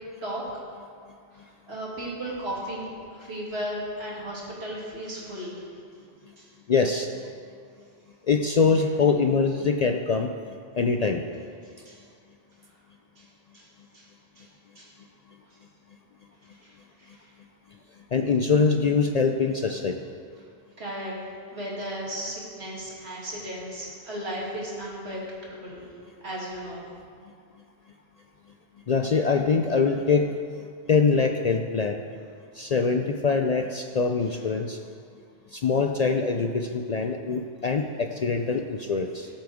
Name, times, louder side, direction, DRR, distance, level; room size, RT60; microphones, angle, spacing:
voice 1, 1.3-5.6 6.4-6.5 11.8-12.0 13.2-13.3 13.5-13.7 13.9-14.1 14.4-14.5 14.8-14.9 16.6-16.7 17.0-17.3 20.8-21.2 21.5-25.9 26.2-26.9, equal, 70° right, -5 dB, 2.7 m, -35 dB
voice 2, 6.7-7.1 8.3-10.3 10.8-11.2 18.1-20.0 28.9-30.3 30.9-32.0 32.6-34.8 35.5-39.3, left 5 dB, 50° left, 4 dB, 0.5 m, -23 dB
18.0 x 7.4 x 3.6 m, 2.2 s
omnidirectional pair, 1.1 m